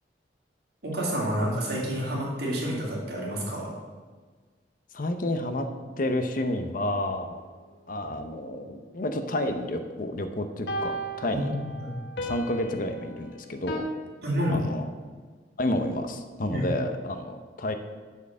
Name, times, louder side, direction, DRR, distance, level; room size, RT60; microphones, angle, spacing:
voice 1, 0.8-3.7 11.3-12.0 14.2-14.6 16.5-16.7, equal, 60° right, -4 dB, 2.5 m, -29 dB
voice 2, 4.9-5.7 6.0-7.4 7.9-11.5 12.2-13.8 14.5-14.9 15.6-17.7, left 1 dB, 50° left, 8 dB, 0.7 m, -30 dB
sound 1, 10.7-13.8, right 1 dB, 70° left, 1.1 m, -36 dB
8.3 x 4.6 x 7.2 m, 1.5 s
head